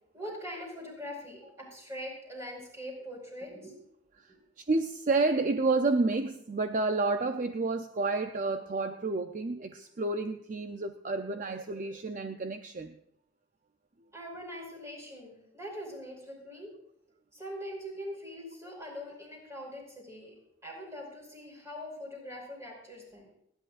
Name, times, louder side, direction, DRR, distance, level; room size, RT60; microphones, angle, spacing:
voice 1, 0.1-3.8 4.3-4.4 14.1-16.7 17.3-23.4, equal, 15° right, -1 dB, 5.0 m, -42 dB
voice 2, 4.6-12.9, right 3 dB, 40° right, 7 dB, 0.6 m, -30 dB
29.5 x 10.5 x 2.5 m, 0.79 s
head